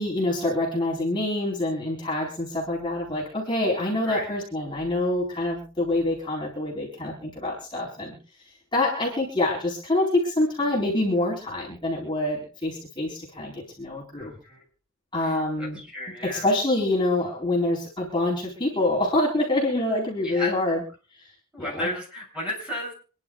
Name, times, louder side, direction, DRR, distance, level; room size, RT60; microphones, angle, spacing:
voice 1, 0.0-8.2 8.7-14.3 15.1-15.8 16.2-20.8 21.1-21.3 21.6-21.9, left 2 dB, 20° left, -4 dB, 4.3 m, -26 dB
voice 2, 14.2-14.6 15.2-16.5 20.2-20.7 21.5-22.9, left 1 dB, 5° right, -1 dB, 7.0 m, -34 dB
27.0 x 11.0 x 2.4 m, 0.38 s
head